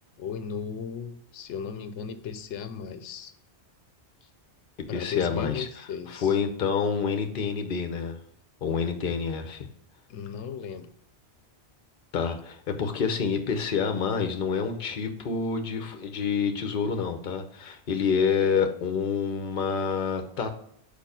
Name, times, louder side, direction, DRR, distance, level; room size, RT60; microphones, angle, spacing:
voice 1, 0.2-3.3 4.9-6.4 10.1-10.9, left 6 dB, 90° left, 10 dB, 0.9 m, -36 dB
voice 2, 4.9-5.6 6.2-8.2 8.6-9.7 12.1-20.5, left 6 dB, 55° left, 7 dB, 0.9 m, -27 dB
4.9 x 4.5 x 5.1 m, 0.69 s
omnidirectional pair, 1.1 m